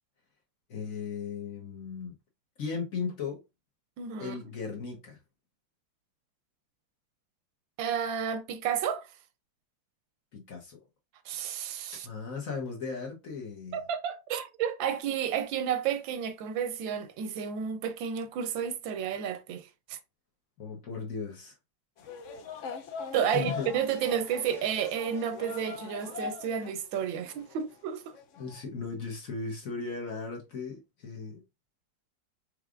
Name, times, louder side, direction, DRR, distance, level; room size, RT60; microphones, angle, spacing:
voice 1, 0.7-2.1 2.6-3.4 4.2-5.2 10.3-10.8 12.0-13.8 20.6-21.5 23.3-23.7 27.2-27.3 28.4-31.4, left 5 dB, 50° left, 1.3 m, -37 dB
voice 2, 4.0-4.3 7.8-9.1 11.3-12.1 13.7-20.0 23.1-28.1, right 8 dB, 90° right, 1.4 m, -31 dB
sound 1, 22.0-26.7 27.0-27.7 28.1-28.6, left 5 dB, 90° left, 0.6 m, -41 dB
4.7 x 3.3 x 2.4 m
omnidirectional pair, 2.1 m